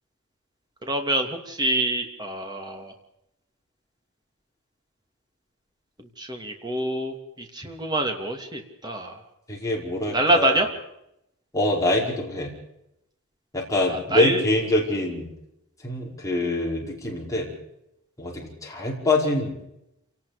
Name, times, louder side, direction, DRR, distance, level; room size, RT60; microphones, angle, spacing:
voice 1, 0.8-2.9 6.2-9.2 10.1-10.7 13.9-14.4, right 1 dB, 20° right, 3 dB, 2.9 m, -26 dB
voice 2, 9.5-10.6 11.5-12.5 13.5-15.3 15.8-17.5 18.2-19.5, left 2 dB, 15° left, -2 dB, 5.0 m, -25 dB
28.0 x 18.5 x 5.3 m, 0.81 s
head